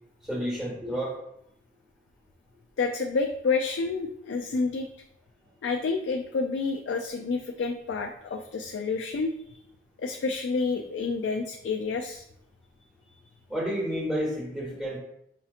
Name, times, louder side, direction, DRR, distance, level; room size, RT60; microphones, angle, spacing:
voice 1, 0.3-1.1 13.5-15.0, equal, ahead, -6 dB, 1.0 m, -30 dB
voice 2, 2.8-4.9 5.6-9.6 10.0-12.3, left 4 dB, 75° left, 4 dB, 0.3 m, -29 dB
5.9 x 2.8 x 2.4 m, 0.79 s
head